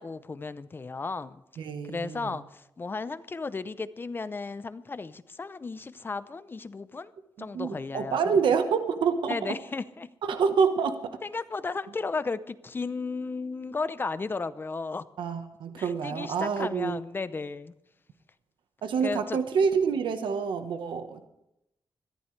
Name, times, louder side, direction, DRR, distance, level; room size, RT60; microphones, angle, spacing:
voice 1, 0.0-1.4 1.8-7.1 7.4-8.2 9.3-10.1 11.2-15.0 15.8-17.7 19.0-19.4, left 4 dB, 25° left, 14 dB, 0.6 m, -34 dB
voice 2, 1.6-2.4 7.4-9.5 10.2-11.1 15.2-17.0 18.8-21.3, right 6 dB, 85° right, 7 dB, 1.2 m, -27 dB
21.5 x 14.5 x 3.3 m, 0.84 s
wide cardioid pair, 135°, 8 cm